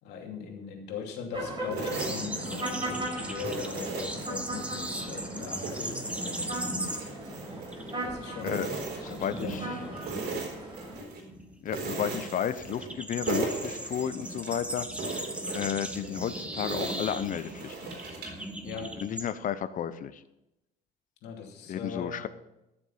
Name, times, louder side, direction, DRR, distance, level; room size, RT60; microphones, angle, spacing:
voice 1, 0.0-6.0 7.3-7.6 8.0-8.7 9.1-10.2 18.6-18.9 21.2-22.2, left 6 dB, 85° left, 1 dB, 2.7 m, -40 dB
sound 1, 1.3-11.0, right 1 dB, 30° right, 5.7 m, -38 dB
sound 2, 1.7-3.0 3.4-5.0 5.4-8.1 8.4-9.6 10.0-11.2 11.7-13.0 13.3-14.6 15.0-18.5, right 3 dB, 75° right, 4.1 m, -38 dB
sound 3, 1.9-7.3 7.6-7.9 8.2-19.3, right 1 dB, 5° right, 1.5 m, -38 dB
voice 2, 8.9-9.7 10.3-10.4 11.6-14.9 15.1-17.8 19.0-20.2 21.7-22.3, left 9 dB, 50° left, 13 dB, 0.9 m, -33 dB
14.5 x 7.2 x 5.7 m, 0.91 s
cardioid pair, 110°, 17 cm